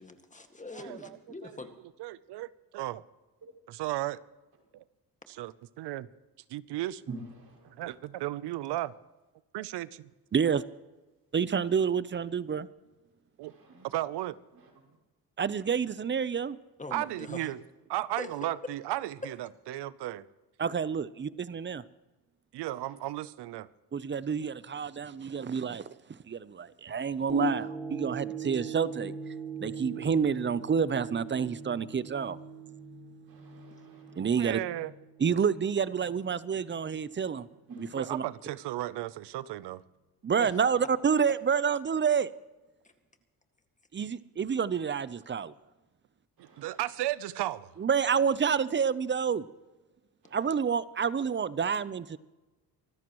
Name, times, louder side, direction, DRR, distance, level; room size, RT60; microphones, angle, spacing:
voice 1, 0.0-1.7 16.8-17.5 18.2-18.3 40.4-40.5 44.0-44.1, left 3 dB, 20° left, 6 dB, 2.0 m, -42 dB
voice 2, 0.7-1.1 1.4-1.5 2.0-3.0 3.8-4.2 4.7-4.8 5.3-6.1 6.5-7.0 7.8-8.9 9.5-10.1 13.4-13.5 13.8-14.3 16.9-17.6 17.9-20.2 22.5-23.7 34.3-34.9 38.0-39.8 46.6-47.7, right 15 dB, 80° right, 18 dB, 0.7 m, -35 dB
voice 3, 7.1-8.0 13.4-14.0 14.5-15.0 22.7-23.0 27.3-27.6 33.3-34.5 37.7-38.2 46.4-46.8 50.2-50.6, equal, 65° right, -1 dB, 6.7 m, -39 dB
voice 4, 10.3-10.6 11.3-12.7 15.4-16.6 20.6-21.8 23.9-25.8 26.2-27.5 27.9-29.1 29.6-32.4 34.2-34.6 35.2-37.5 37.9-38.2 40.2-42.3 43.9-45.5 47.8-49.5 50.3-52.2, right 6 dB, 30° right, 17 dB, 0.7 m, -28 dB
sound 1, 27.3-35.7 36.2-36.3, right 6 dB, ahead, 2.0 m, -41 dB
25.0 x 13.5 x 3.1 m, 1.1 s
cardioid pair, 90°, 40 cm